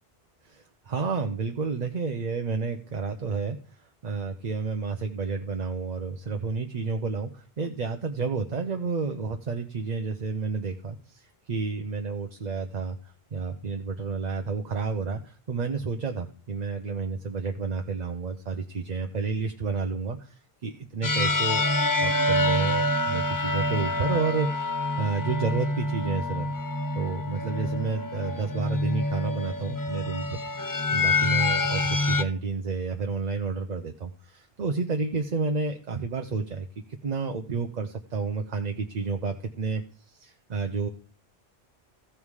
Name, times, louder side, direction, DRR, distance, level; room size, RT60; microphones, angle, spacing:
voice 1, 0.4-21.6 22.0-24.7 25.0-26.5 26.9-30.4 30.9-40.9, right 4 dB, 45° right, 5 dB, 0.8 m, -31 dB
sound 1, 21.0-32.2, left 2 dB, 30° left, 0.4 m, -26 dB
15.0 x 5.4 x 4.8 m, 0.43 s
omnidirectional pair, 1.1 m